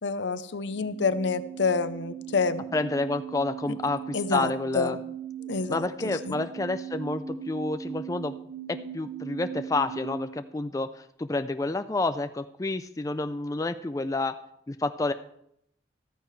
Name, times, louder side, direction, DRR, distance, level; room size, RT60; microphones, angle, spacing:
voice 1, 0.0-2.6 4.1-4.9 5.4-5.8 6.3-6.4, left 4 dB, 75° left, 12 dB, 0.7 m, -27 dB
sound 1, 0.6-10.2, right 8 dB, 90° right, 1.9 m, -39 dB
voice 2, 2.7-5.0 5.7-8.4 8.7-14.4 14.7-15.1, left 2 dB, 20° left, 9 dB, 0.3 m, -29 dB
14.0 x 13.5 x 3.2 m, 0.73 s
head